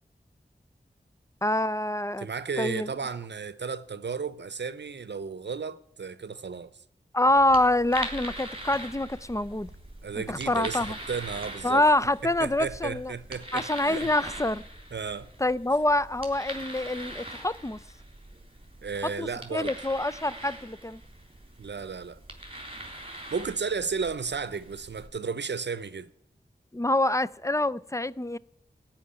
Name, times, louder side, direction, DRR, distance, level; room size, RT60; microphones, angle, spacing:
voice 1, 1.4-2.3 2.6-2.9 7.1-9.7 10.1-11.0 11.6-13.1 13.5-14.6 15.4-17.8 19.0-21.0 26.7-28.4, left 1 dB, 15° left, 0.5 m, -26 dB
voice 2, 2.2-6.7 10.0-11.8 12.2-14.1 14.9-15.3 18.8-19.8 21.6-22.2 23.3-26.1, right 5 dB, 75° right, 0.7 m, -34 dB
sound 1, 7.2-25.1, right 1 dB, 30° right, 3.8 m, -42 dB
17.0 x 5.9 x 10.0 m
wide cardioid pair, 45°, 18 cm